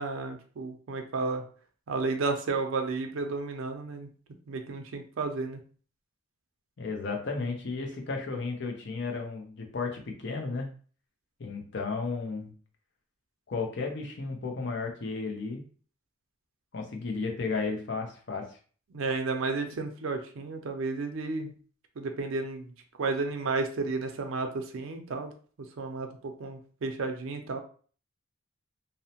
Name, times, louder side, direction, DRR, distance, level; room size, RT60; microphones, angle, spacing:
voice 1, 0.0-1.4 1.9-4.1 4.5-5.6 18.9-21.5 22.0-22.7 23.0-25.3 25.8-27.6, right 3 dB, 65° right, 5 dB, 0.4 m, -32 dB
voice 2, 6.8-10.7 11.4-12.5 13.5-15.6 16.7-18.6, left 4 dB, 55° left, 2 dB, 0.6 m, -33 dB
2.7 x 2.0 x 2.8 m, 0.43 s
head